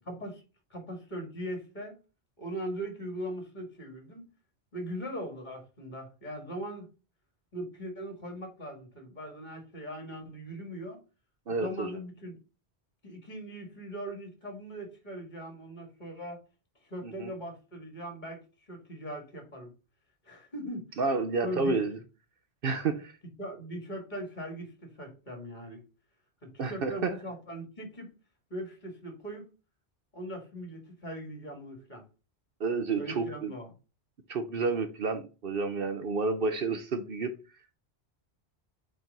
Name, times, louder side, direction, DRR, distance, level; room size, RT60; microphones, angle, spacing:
voice 1, 0.1-0.4 0.7-2.0 2.4-4.3 4.7-6.9 7.5-11.0 11.5-12.3 13.0-16.4 16.8-18.4 18.7-19.7 20.2-21.0 21.4-21.8 23.4-25.8 26.4-28.1 28.5-29.4 30.1-32.0 33.0-33.7, equal, 40° left, 2.1 m, -40 dB
voice 2, 11.5-11.9 17.0-17.3 21.0-22.0 22.6-23.1 26.6-27.1 32.6-33.5 34.3-37.3, right 4 dB, 60° right, 0.9 m, -30 dB
4.5 x 4.3 x 5.2 m
omnidirectional pair, 1.1 m